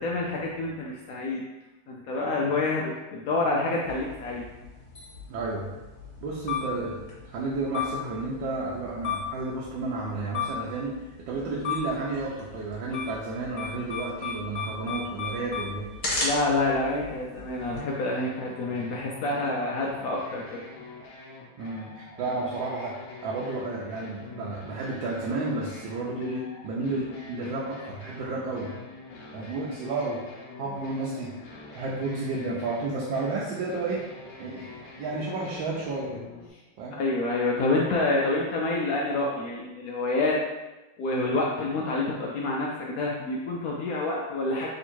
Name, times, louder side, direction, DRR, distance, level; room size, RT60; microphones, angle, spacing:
voice 1, 0.0-1.4 1.9-4.5 16.2-20.6 37.0-40.4 41.0-44.7, left 2 dB, 85° left, -3 dB, 0.8 m, -27 dB
sound 1, 3.8-17.8, left 5 dB, 50° left, 1.3 m, -36 dB
voice 2, 5.3-5.7 6.2-10.9 11.3-15.9 21.6-22.9 23.2-28.7 29.3-30.3 30.6-31.3 31.7-34.0 34.4-36.2 36.8-37.0, right 3 dB, 75° right, -4 dB, 1.3 m, -32 dB
sound 2, 17.3-36.5, left 3 dB, 65° left, 1.0 m, -45 dB
3.6 x 2.7 x 4.3 m, 1.1 s
omnidirectional pair, 2.1 m